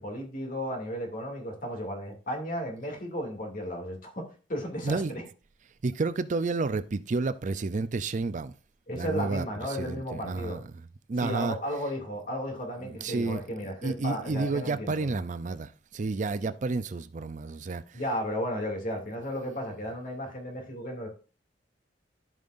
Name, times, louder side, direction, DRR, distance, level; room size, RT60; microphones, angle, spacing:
voice 1, 0.0-5.2 8.9-10.6 11.2-15.2 17.9-21.1, equal, 50° left, 2.5 m, -34 dB
voice 2, 5.8-8.5 8.9-9.5 9.8-10.6 11.1-11.6 12.8-18.0, right 3 dB, 45° right, 0.5 m, -31 dB
14.0 x 5.4 x 2.5 m
head